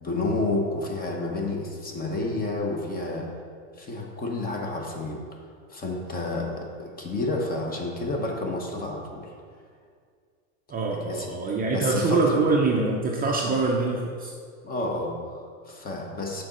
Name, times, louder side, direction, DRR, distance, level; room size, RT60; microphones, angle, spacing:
voice 1, 0.0-3.3 3.8-5.2 5.7-9.3 11.0-11.3 11.7-12.4 13.4-13.5 14.6-16.4, left 2 dB, 20° left, 0 dB, 1.0 m, -30 dB
voice 2, 10.7-14.3, right 3 dB, 20° right, -1 dB, 0.6 m, -24 dB
6.4 x 4.1 x 6.2 m, 2.1 s
supercardioid pair, 130°, 41 cm